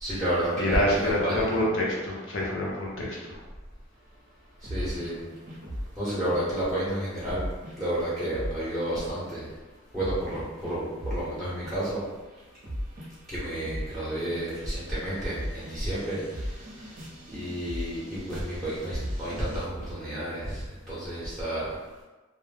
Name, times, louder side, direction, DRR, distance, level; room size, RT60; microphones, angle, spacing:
voice 1, 0.0-1.5 4.6-5.2 6.0-7.4 7.8-9.5 9.9-12.0 13.3-16.9 17.3-21.7, right 1 dB, ahead, -10 dB, 0.7 m, -31 dB
voice 2, 0.6-3.4, left 1 dB, 65° left, -4 dB, 0.7 m, -26 dB
sound 1, 4.6-6.0 6.3-6.5 7.3-7.8 8.3-9.2 10.0-11.3 11.6-12.1 12.4-19.7, equal, 40° right, 0.5 m, -38 dB
2.3 x 2.0 x 3.2 m, 1.2 s
head